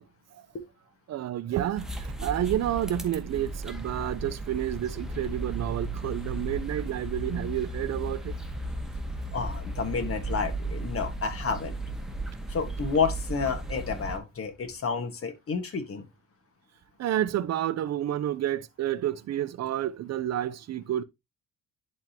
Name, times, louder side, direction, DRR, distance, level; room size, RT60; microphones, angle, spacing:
voice 1, 1.1-8.4 17.0-21.0, right 12 dB, 60° right, 0.7 m, -30 dB
sound 1, 1.8-14.2, right 2 dB, ahead, 1.3 m, -35 dB
voice 2, 9.3-11.7 12.5-16.0, left 5 dB, 50° left, 1.7 m, -30 dB
11.0 x 3.6 x 2.9 m
cardioid pair, 90°, 30 cm